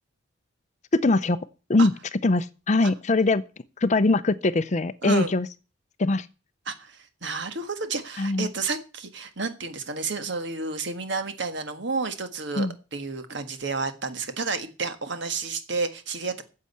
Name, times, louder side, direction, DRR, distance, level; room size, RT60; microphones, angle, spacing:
voice 1, 0.9-1.4 1.7-1.9 2.2-3.4 3.8-5.5 6.0-6.3 8.2-8.5 12.6-12.7, left 2 dB, 35° left, 0.5 m, -22 dB
voice 2, 6.7-16.4, right 4 dB, 55° right, 1.6 m, -31 dB
9.7 x 7.6 x 8.3 m
head